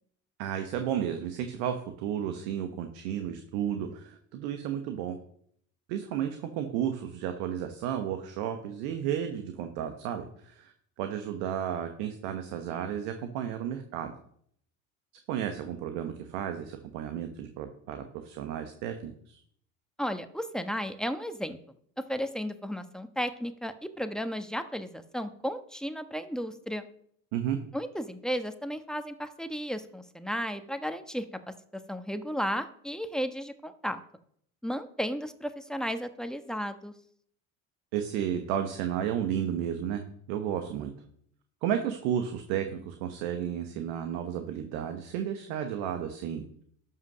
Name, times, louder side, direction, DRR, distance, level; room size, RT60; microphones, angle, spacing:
voice 1, 0.4-5.2 5.9-10.7 11.0-14.1 15.3-19.4 27.3-27.6 37.9-40.0 40.3-40.9 41.6-46.4, right 9 dB, 70° right, 7 dB, 1.2 m, -33 dB
voice 2, 20.0-21.6 22.1-26.9 27.7-31.2 31.9-34.0 34.6-36.9, equal, ahead, 8 dB, 1.1 m, -34 dB
12.5 x 5.7 x 6.2 m, 0.65 s
hypercardioid pair, 65°, 41 cm